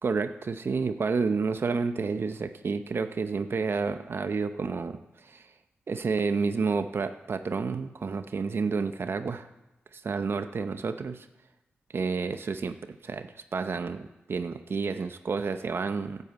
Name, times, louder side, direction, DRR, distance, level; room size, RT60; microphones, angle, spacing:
voice 1, 0.0-5.5 5.9-9.5 9.9-11.3 11.9-12.8 13.0-16.2, right 4 dB, 60° right, 9 dB, 0.7 m, -30 dB
10.5 x 8.3 x 8.0 m, 0.99 s
cardioid pair, 60°, 4 cm